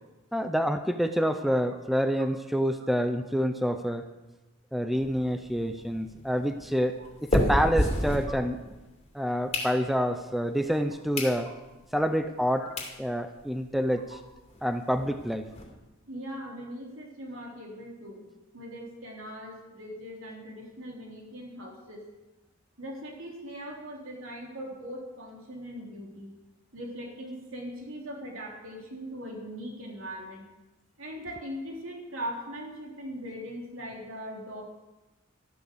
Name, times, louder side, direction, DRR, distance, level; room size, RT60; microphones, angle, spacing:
voice 1, 0.3-4.0 4.7-8.6 9.1-11.5 11.9-12.7 13.0-14.1 14.6-15.5, equal, ahead, 8 dB, 0.6 m, -27 dB
sound 1, 4.9-8.9 9.3-10.2 10.7-10.8 11.1-11.4 11.8-11.9 12.5-12.6 12.8-13.0 13.4-13.5 13.7-13.8 14.1-14.2 14.5-15.6, left 1 dB, 30° left, 2.7 m, -31 dB
voice 2, 16.1-18.2 18.5-22.0 22.8-26.3 26.7-30.4 31.0-34.6, equal, 75° right, 0 dB, 3.6 m, -40 dB
13.5 x 11.5 x 6.9 m, 1.1 s
head